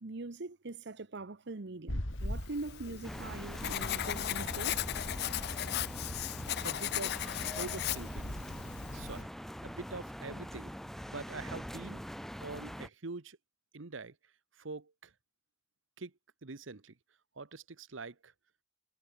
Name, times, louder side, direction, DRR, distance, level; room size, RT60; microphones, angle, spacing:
voice 1, 0.0-4.9, right 3 dB, 60° right, 1.0 m, -42 dB
sound 1, 1.9-9.3, left 1 dB, 90° left, 4.0 m, -43 dB
Writing, 2.5-9.2, left 12 dB, 60° left, 0.4 m, -37 dB
sound 2, 3.0-12.9, equal, ahead, 2.8 m, -43 dB
voice 2, 6.6-8.4 8.9-9.3 9.6-10.7 11.1-12.0 12.4-13.4 13.7-14.1 14.6-15.1 16.0-16.1 16.4-16.9 17.4-18.3, right 3 dB, 85° right, 1.1 m, -44 dB
head